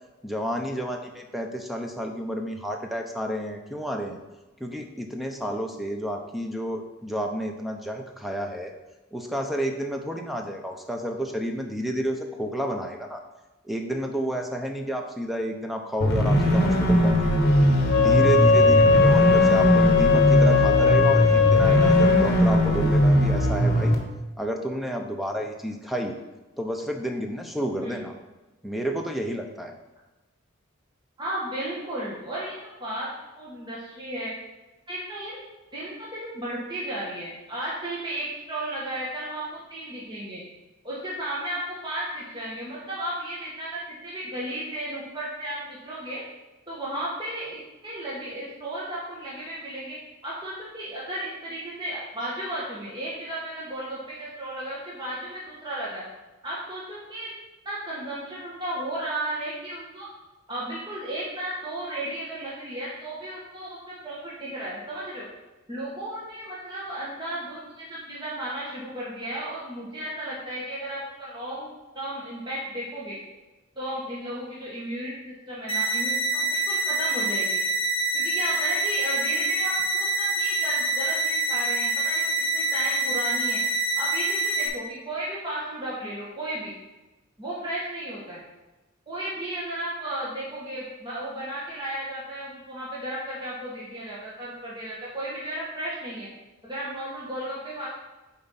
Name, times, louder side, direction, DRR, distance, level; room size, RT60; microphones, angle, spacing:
voice 1, 0.2-4.2 4.6-8.7 9.1-13.2 13.6-17.5 18.0-24.0 24.4-26.2 26.6-28.1 28.6-29.8, equal, ahead, 3 dB, 0.5 m, -30 dB
sound 1, 16.0-24.0, equal, 50° left, 1.1 m, -20 dB
Wind instrument woodwind instrument, 17.8-22.3, left 6 dB, 85° left, 0.6 m, -19 dB
voice 2, 31.2-33.1 33.4-34.3 34.9-35.4 35.7-40.4 40.8-46.2 46.7-50.0 50.2-56.0 56.4-57.3 57.6-60.1 60.5-65.3 65.7-73.2 73.8-77.6 78.1-83.6 84.0-86.7 87.4-88.4 89.1-96.3 96.6-97.9, right 1 dB, 20° right, -7 dB, 1.1 m, -34 dB
sound 2, 75.7-84.7, right 2 dB, 25° left, 1.0 m, -26 dB
7.1 x 4.4 x 4.1 m, 1.1 s
head